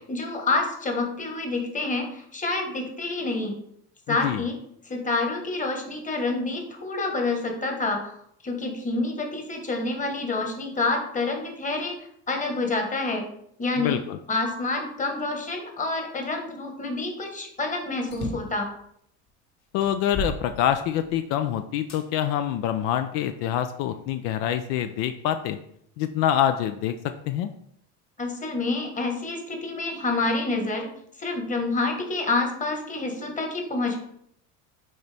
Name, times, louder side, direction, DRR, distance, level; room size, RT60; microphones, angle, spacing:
voice 1, 0.1-3.6 4.1-4.6 4.8-8.1 8.4-11.9 12.3-13.2 13.6-14.0 14.3-18.7 28.2-30.9 31.2-34.0, left 3 dB, 20° left, 3 dB, 1.3 m, -28 dB
voice 2, 4.1-4.4 13.8-14.2 19.7-25.6 26.0-27.0 27.3-27.5, left 10 dB, 75° left, 9 dB, 0.5 m, -26 dB
sound 1, 18.1-18.6 19.3-19.4 19.8-21.2 21.9-22.0 22.8-23.8, left 1 dB, 45° left, 1.3 m, -35 dB
6.6 x 4.2 x 3.4 m, 0.69 s
cardioid pair, 120°, 35 cm